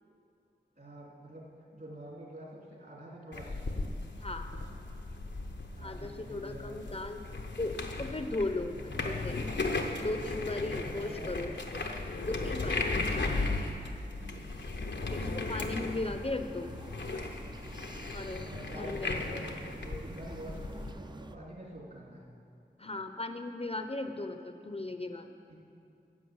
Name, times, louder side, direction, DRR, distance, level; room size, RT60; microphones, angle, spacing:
voice 1, 0.8-1.5 1.7-3.6 5.7-7.0 8.5-8.9 10.5-11.5 12.1-12.5 14.2-15.2 18.4-19.5 19.8-22.3 25.5-25.6, right 1 dB, 55° right, -4 dB, 3.2 m, -48 dB
sound 1, 3.3-20.9, left 3 dB, 85° left, 1.0 m, -36 dB
voice 2, 4.2-4.5 5.8-7.2 7.6-8.7 9.0-9.4 10.0-11.8 12.4-13.0 15.1-16.7 18.1-18.5 18.7-19.2 22.8-25.3, left 2 dB, 35° left, 7 dB, 0.7 m, -37 dB
sound 2, 15.7-21.4, right 2 dB, 25° right, 0.5 m, -48 dB
11.0 x 7.3 x 7.9 m, 2.5 s
wide cardioid pair, 55°, 18 cm